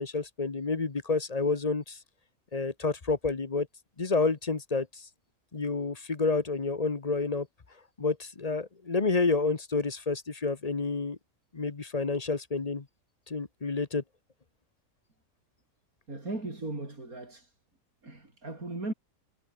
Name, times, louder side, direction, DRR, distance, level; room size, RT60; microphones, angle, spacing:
voice 1, 0.0-2.0 2.5-3.7 4.0-5.1 5.5-7.5 8.0-11.2 11.5-12.8 13.3-14.0, left 4 dB, 30° left, 1.1 m, -29 dB
voice 2, 16.1-17.5 18.0-18.9, right 2 dB, 90° right, 6.1 m, -37 dB
omnidirectional pair, 1.5 m